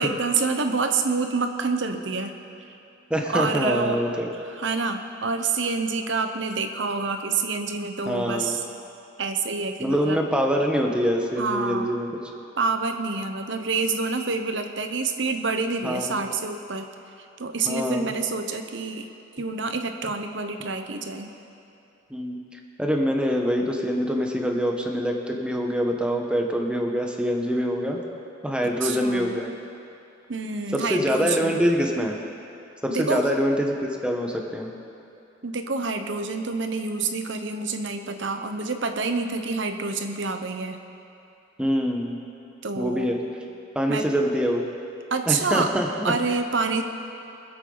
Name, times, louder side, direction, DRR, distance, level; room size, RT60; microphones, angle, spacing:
voice 1, 0.0-2.3 3.3-4.0 4.4-8.6 9.2-10.2 11.4-11.9 12.6-16.9 17.2-19.1 19.4-21.3 28.8-29.4 30.3-31.6 32.9-33.3 35.4-40.8 42.6-43.1 43.9-44.1 45.1-45.7 46.0-46.8, right 4 dB, 65° right, 6 dB, 0.9 m, -27 dB
voice 2, 3.1-4.3 8.1-8.6 9.8-12.1 15.8-16.2 17.7-18.1 22.1-28.0 28.4-29.5 30.7-32.2 32.8-34.7 41.6-42.2 42.8-43.2 43.7-44.6 45.3-46.1, equal, 5° right, 1 dB, 1.1 m, -25 dB
24.5 x 8.1 x 4.0 m, 2.7 s
head